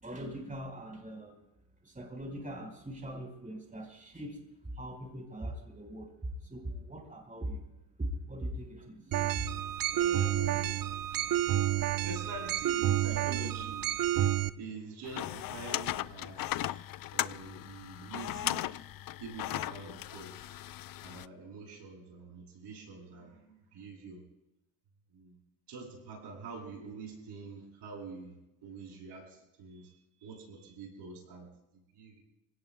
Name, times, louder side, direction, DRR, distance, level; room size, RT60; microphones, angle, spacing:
voice 1, 0.0-1.4 1.8-4.4 4.7-6.1 6.4-7.7 8.0-9.5, equal, 20° right, 2 dB, 4.5 m, -41 dB
sound 1, 9.1-14.5, right 12 dB, 50° right, 0.8 m, -30 dB
voice 2, 9.9-10.9 11.1-11.8 12.0-13.9 14.6-16.8 17.1-18.8 19.2-20.6 21.0-24.2 25.1-25.4 25.7-32.2, right 3 dB, 70° right, -1 dB, 7.5 m, -45 dB
sound 2, 15.0-21.3, left 14 dB, 50° left, 0.6 m, -37 dB
28.5 x 17.5 x 2.2 m, 0.87 s
supercardioid pair, 70°, 43 cm